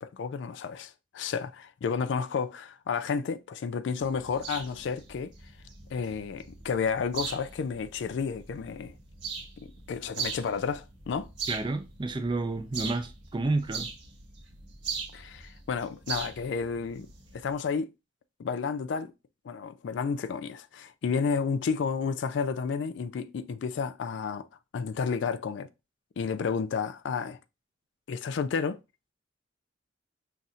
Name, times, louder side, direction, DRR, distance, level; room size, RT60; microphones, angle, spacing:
voice 1, 0.0-5.3 5.9-8.9 9.6-11.3 15.1-17.1 17.3-17.9 18.4-19.1 19.4-24.5 24.7-25.7 26.2-27.4 28.1-28.8, left 5 dB, 70° left, 0.3 m, -31 dB
sound 1, 4.0-17.5, right 5 dB, 70° right, 1.4 m, -40 dB
voice 2, 11.5-13.9, right 2 dB, 25° right, 0.5 m, -30 dB
5.7 x 2.6 x 2.4 m
head